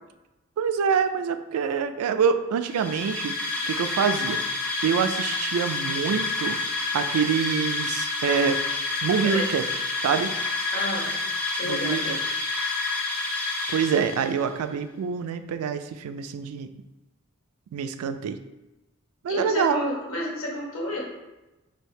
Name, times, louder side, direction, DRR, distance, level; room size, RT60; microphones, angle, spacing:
voice 1, 0.6-3.4 3.7-4.4 4.8-6.6 6.9-8.6 9.0-9.6 10.0-10.3 11.6-12.2 13.7-16.7 17.7-18.4 19.2-19.8, right 6 dB, 75° right, 12 dB, 0.3 m, -25 dB
sound 1, 2.6-14.5, left 3 dB, 5° left, 0.5 m, -29 dB
voice 2, 9.2-9.6 10.7-11.1 11.6-12.2 19.3-21.0, left 1 dB, 65° left, -2 dB, 1.1 m, -31 dB
3.3 x 2.7 x 4.3 m, 1.0 s
head